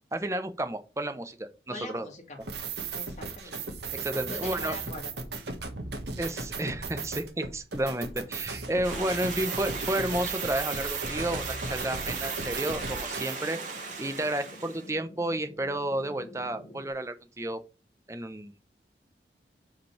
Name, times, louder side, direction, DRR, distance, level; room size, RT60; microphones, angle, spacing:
voice 1, 0.1-2.1 3.9-4.8 6.2-13.6 14.0-17.6 18.1-18.6, right 1 dB, 15° right, 9 dB, 0.8 m, -32 dB
voice 2, 1.7-2.4 2.9-5.0, left 2 dB, 40° left, 0 dB, 2.3 m, -43 dB
sound 1, 2.4-13.4, right 4 dB, 75° right, 1.6 m, -36 dB
Stream, 8.8-14.9, right 4 dB, 45° right, 2.4 m, -37 dB
sound 2, 11.8-16.9, equal, 65° left, 2.3 m, -50 dB
5.3 x 5.2 x 5.8 m, 0.31 s
head